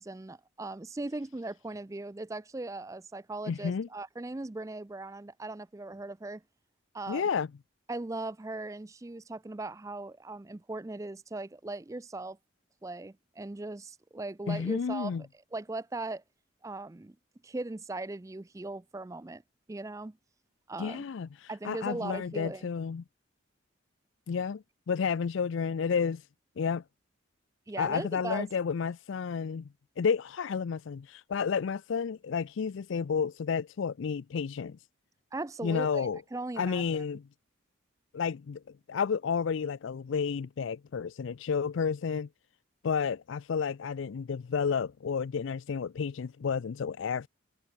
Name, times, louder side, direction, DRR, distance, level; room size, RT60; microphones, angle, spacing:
voice 1, 0.0-6.4 6.9-7.2 7.9-12.4 12.8-15.1 15.5-16.2 16.6-17.2 17.4-19.4 19.7-20.2 20.7-21.0 21.5-22.7 27.7-28.5 35.3-37.0, right 2 dB, 15° right, 0.4 m, -39 dB
voice 2, 3.5-3.9 7.1-7.5 14.5-15.2 20.8-23.0 24.3-26.3 26.6-26.8 27.8-29.7 30.0-34.8 35.6-36.2 36.6-37.2 38.1-38.6 38.9-42.3 42.8-47.3, left 6 dB, 70° left, 0.4 m, -31 dB
head